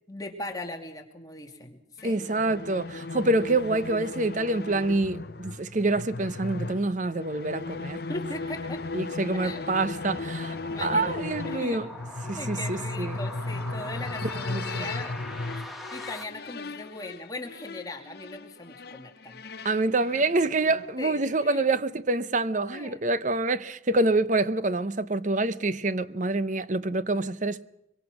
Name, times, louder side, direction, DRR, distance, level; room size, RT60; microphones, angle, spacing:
voice 1, 0.1-2.2 8.1-8.8 9.3-9.6 10.7-11.8 12.3-15.2 15.6-19.7 21.0-21.6 22.7-23.0, left 2 dB, 20° left, 2.5 m, -39 dB
sound 1, 2.0-21.0, left 3 dB, 55° left, 0.8 m, -36 dB
voice 2, 2.0-8.0 8.9-11.9 12.3-13.2 14.2-14.9 19.6-27.7, right 2 dB, 40° right, 0.8 m, -26 dB
sound 2, 8.3-16.2, left 1 dB, ahead, 1.9 m, -44 dB
24.0 x 24.0 x 6.3 m
head